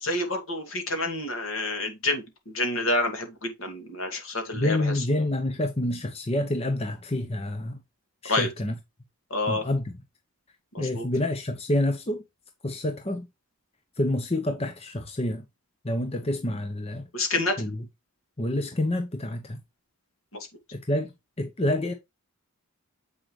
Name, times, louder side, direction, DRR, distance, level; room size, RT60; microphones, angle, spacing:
voice 1, 0.0-5.0 8.3-8.5 9.3-9.7 10.7-11.1 17.1-17.6 20.3-20.5, left 2 dB, 70° left, 2.6 m, -28 dB
voice 2, 4.5-7.8 8.2-8.7 9.5-9.9 10.8-12.2 12.6-13.3 14.0-15.4 15.8-17.0 17.6-17.8 18.4-19.6 20.7-21.1 21.4-21.9, left 1 dB, 30° left, 0.9 m, -28 dB
7.8 x 6.0 x 3.2 m
head